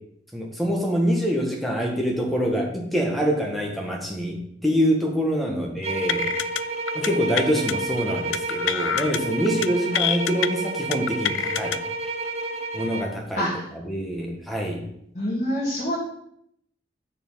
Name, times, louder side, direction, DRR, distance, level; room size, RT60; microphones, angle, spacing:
voice 1, 0.3-6.3 6.9-11.8 12.7-14.8, equal, ahead, -1 dB, 1.4 m, -25 dB
sound 1, 5.8-13.2, right 2 dB, 35° right, 0.7 m, -30 dB
sound 2, 6.1-6.6 6.9-7.1 7.4-7.7 8.3-9.2 9.5-9.7 9.9-10.5 10.9-11.8, left 11 dB, 90° left, 0.4 m, -26 dB
voice 2, 15.1-16.0, equal, 40° left, -7 dB, 2.3 m, -26 dB
7.1 x 5.6 x 5.5 m, 0.72 s
head